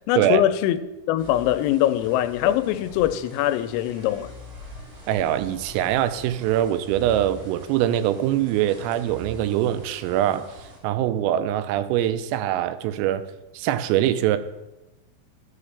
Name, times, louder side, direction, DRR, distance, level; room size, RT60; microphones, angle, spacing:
voice 1, 0.1-0.8 1.1-4.3, left 12 dB, 90° left, 3.2 m, -22 dB
sound 1, 1.2-10.8, right 1 dB, 60° right, 4.7 m, -44 dB
voice 2, 5.1-10.5 10.8-13.2 13.5-14.4, right 12 dB, 90° right, 3.3 m, -23 dB
12.5 x 7.3 x 3.3 m
omnidirectional pair, 5.9 m